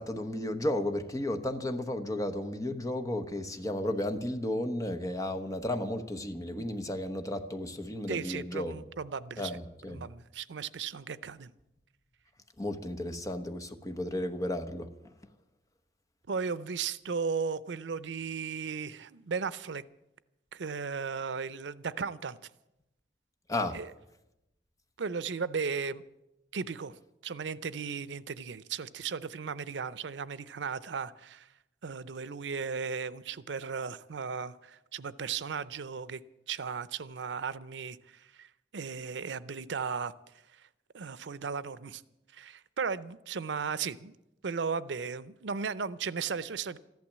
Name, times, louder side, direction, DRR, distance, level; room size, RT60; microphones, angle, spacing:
voice 1, 0.0-8.8 9.4-10.0 12.6-14.9 23.5-23.8, left 1 dB, 20° left, 1.1 m, -33 dB
voice 2, 8.1-9.5 9.9-11.5 16.3-19.8 20.5-22.4 23.7-23.9 25.0-26.0 26.5-27.0 27.2-31.5 31.8-36.2 36.5-40.1 40.5-40.7 40.9-42.0 42.3-44.1 44.4-46.8, right 5 dB, 90° right, 0.6 m, -36 dB
14.5 x 12.0 x 7.4 m
head